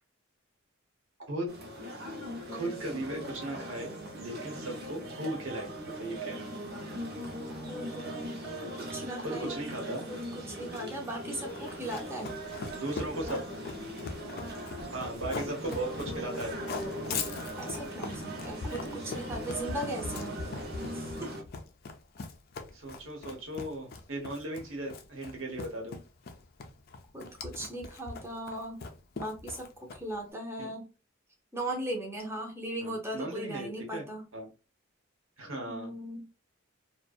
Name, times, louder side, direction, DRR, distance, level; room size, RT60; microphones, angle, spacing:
sound 1, 1.5-21.4, equal, 50° right, 0.7 m, -40 dB
voice 1, 2.5-6.5 9.2-10.0 12.7-13.4 14.9-16.5 22.7-26.0 30.6-30.7 32.8-34.0 34.3-34.5 35.4-35.9, right 1 dB, 75° right, 0 dB, 1.0 m, -37 dB
voice 2, 7.5-8.3 8.8-9.6 10.1-12.3 17.5-20.3 20.9-21.3 27.1-28.8 29.1-30.9 31.5-34.3 35.6-36.3, right 1 dB, 10° right, 0 dB, 0.7 m, -38 dB
Run, 11.5-30.2, left 4 dB, 50° left, 0.4 m, -41 dB
2.6 x 2.1 x 2.3 m, 0.30 s
head